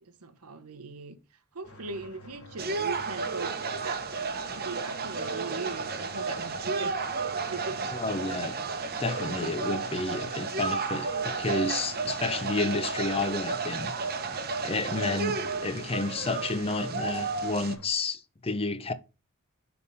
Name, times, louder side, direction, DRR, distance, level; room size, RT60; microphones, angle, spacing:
voice 1, 0.0-1.2 1.5-4.1 4.5-8.0, right 4 dB, 85° right, 1.0 m, -40 dB
sound 1, 1.6-17.9, left 1 dB, 70° left, 1.9 m, -49 dB
sound 2, 2.6-17.8, right 4 dB, 45° right, 0.9 m, -32 dB
voice 2, 7.9-8.6 9.0-13.9 14.6-18.9, left 3 dB, 25° left, 0.6 m, -31 dB
6.8 x 3.6 x 5.5 m
head